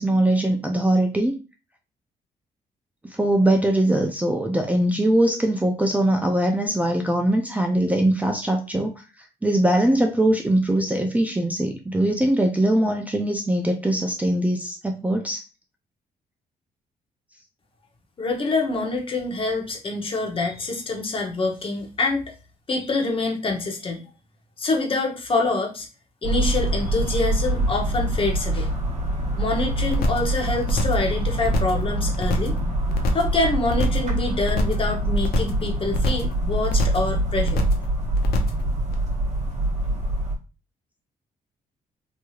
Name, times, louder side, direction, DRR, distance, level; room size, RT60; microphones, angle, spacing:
voice 1, 0.0-1.4 3.0-8.9 9.4-15.4, right 1 dB, 10° right, 3 dB, 0.4 m, -21 dB
voice 2, 18.2-22.2 22.7-24.0 24.6-25.9 26.2-28.7 29.4-32.6 33.1-37.6, left 3 dB, 35° left, 2 dB, 0.9 m, -26 dB
sound 1, 26.2-40.3, right 1 dB, 50° right, 1.1 m, -25 dB
sound 2, 29.9-30.3 30.6-31.1 31.4-31.8 32.1-32.6 32.9-33.3 33.6-34.1 34.4-34.9 35.2-35.6 35.9-36.3 36.6-37.1 37.4-37.8 38.1-38.6 38.9-39.0, left 2 dB, 80° left, 0.6 m, -26 dB
3.1 x 2.7 x 2.3 m, 0.31 s
cardioid pair, 95°, 15 cm